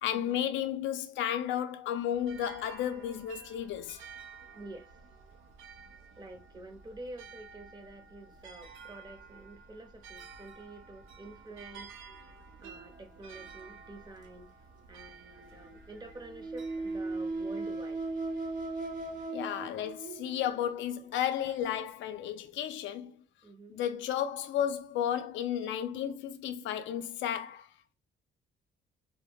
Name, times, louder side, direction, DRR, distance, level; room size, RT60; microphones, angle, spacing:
voice 1, 0.0-4.0 19.3-23.1 23.7-27.7, left 10 dB, 75° left, 0.4 m, -33 dB
sound 1, 2.1-19.2, right 5 dB, 85° right, 0.4 m, -52 dB
voice 2, 4.5-4.9 6.2-11.9 12.6-14.5 14.9-18.1 19.7-20.0 23.4-23.8, right 2 dB, 20° right, 0.6 m, -48 dB
sound 2, 12.6-13.6 15.6-20.7 21.4-21.6 22.4-22.5, right 3 dB, 45° right, 0.9 m, -38 dB
2.2 x 2.0 x 3.3 m
cardioid pair, 90°, 20 cm